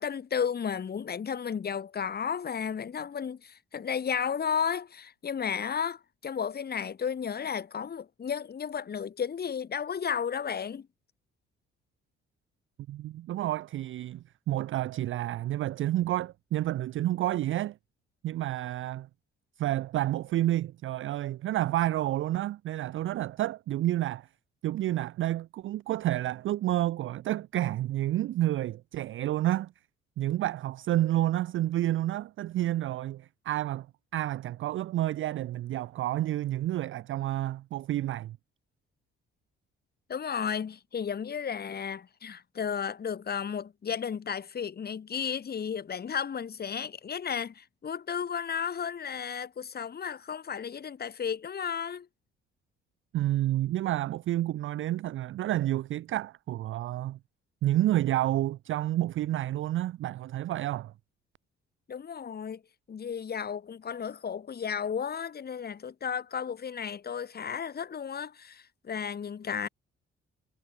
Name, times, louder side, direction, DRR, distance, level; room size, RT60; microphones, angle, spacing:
voice 1, 0.0-10.9 40.1-52.1 61.9-62.6 62.9-69.7, left 7 dB, 30° left, 1.0 m, -33 dB
voice 2, 12.9-17.8 18.2-19.1 19.6-24.3 24.6-29.7 30.2-33.9 34.1-38.4 53.1-57.2 57.6-60.9, right 14 dB, 40° right, 0.4 m, -29 dB
figure-of-eight pair, 45°, 32 cm